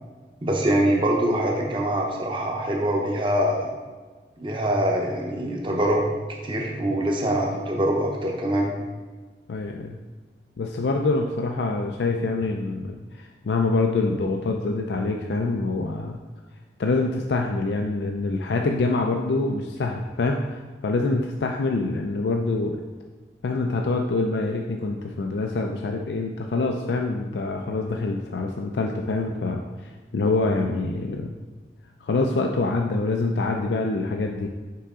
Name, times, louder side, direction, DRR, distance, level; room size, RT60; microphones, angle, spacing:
voice 1, 0.4-3.7 4.4-6.0 6.3-8.7, right 1 dB, 30° right, -1 dB, 0.7 m, -24 dB
voice 2, 9.5-9.9 10.6-16.2 16.8-22.8 23.4-31.3 32.0-34.5, left 3 dB, 80° left, 2 dB, 0.4 m, -25 dB
5.7 x 4.8 x 3.7 m, 1.3 s
head